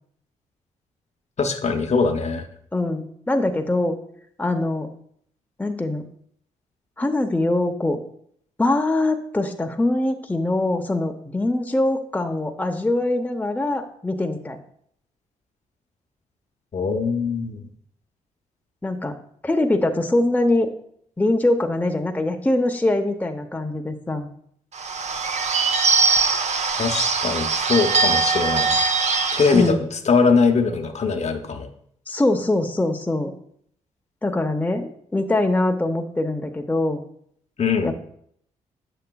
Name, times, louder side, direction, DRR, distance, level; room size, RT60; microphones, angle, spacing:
voice 1, 1.4-2.5 16.7-17.6 26.8-28.7 29.3-31.7 37.6-37.9, left 4 dB, 45° left, 4 dB, 0.8 m, -21 dB
voice 2, 2.7-4.0 4.4-4.9 5.6-6.0 7.0-8.0 8.6-14.6 18.8-19.2 19.4-20.7 21.2-24.3 29.5-29.9 32.1-33.3 34.2-37.0 37.8-38.0, left 2 dB, 10° left, 4 dB, 0.7 m, -23 dB
Bird / Bell, 24.7-29.7, right 4 dB, 45° right, 0.7 m, -21 dB
7.4 x 6.8 x 2.3 m, 0.67 s
hypercardioid pair, 45°, 16 cm